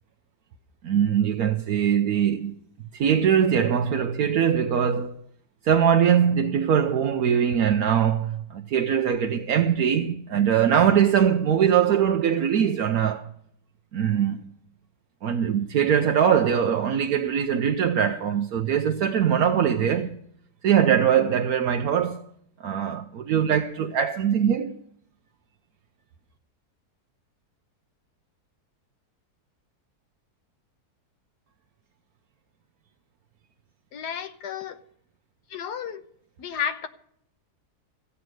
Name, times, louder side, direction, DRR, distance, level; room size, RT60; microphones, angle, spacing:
voice 1, 0.8-2.5 2.9-5.2 5.6-13.3 13.9-14.4 15.2-20.2 20.6-22.2 22.6-24.8, right 8 dB, 70° right, 1.2 m, -22 dB
voice 2, 33.9-34.8 35.5-36.0 36.4-36.9, left 8 dB, 80° left, 1.6 m, -32 dB
15.0 x 8.3 x 7.7 m
omnidirectional pair, 1.7 m